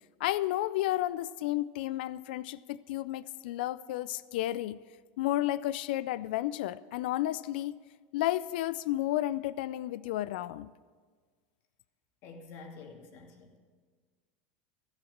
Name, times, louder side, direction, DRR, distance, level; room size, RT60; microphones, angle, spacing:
voice 1, 0.2-4.8 5.2-7.8 8.1-10.7, left 15 dB, 75° left, 17 dB, 0.4 m, -32 dB
voice 2, 12.2-13.6, left 4 dB, 55° left, 2 dB, 2.3 m, -48 dB
14.0 x 7.3 x 7.3 m, 1.5 s
supercardioid pair, 115°, 5 cm